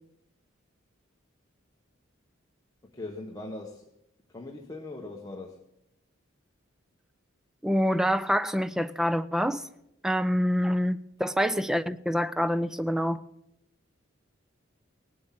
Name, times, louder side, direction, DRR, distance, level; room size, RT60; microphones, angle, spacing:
voice 1, 2.9-3.9 4.3-5.6, left 2 dB, 20° left, 1.0 m, -40 dB
voice 2, 7.6-9.7 10.0-13.2, equal, 5° right, 0.4 m, -26 dB
18.5 x 7.8 x 7.3 m
head